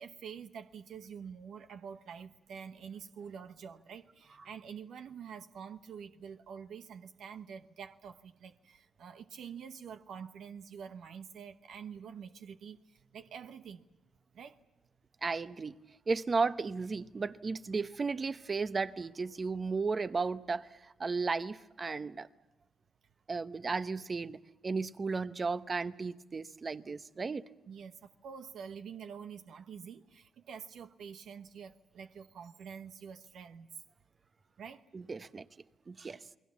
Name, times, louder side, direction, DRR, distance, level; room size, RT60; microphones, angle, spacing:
voice 1, 0.0-13.8 14.3-14.6 27.7-33.7 34.6-34.8, right 7 dB, 75° right, 1.0 m, -47 dB
voice 2, 15.2-15.7 16.1-22.3 23.3-27.5 34.9-35.4 35.9-36.2, right 4 dB, 40° right, 1.0 m, -34 dB
29.0 x 21.0 x 7.3 m
cardioid pair, 65°, 0 cm